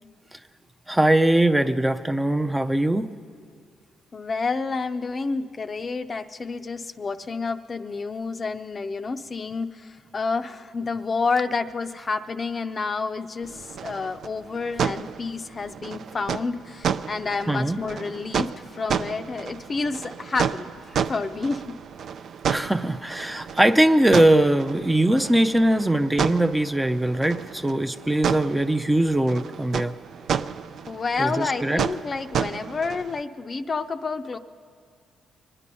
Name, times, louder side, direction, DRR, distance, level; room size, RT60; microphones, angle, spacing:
voice 1, 0.9-3.1 17.5-17.8 22.5-29.9 31.2-31.8, right 1 dB, 10° right, 7 dB, 0.5 m, -21 dB
voice 2, 4.1-20.7 21.1-21.8 30.9-34.4, left 4 dB, 35° left, 8 dB, 0.5 m, -29 dB
sound 1, 13.4-33.2, right 7 dB, 65° right, 0.4 m, -31 dB
24.0 x 9.9 x 5.4 m, 2.1 s
cardioid pair, 90°, 0 cm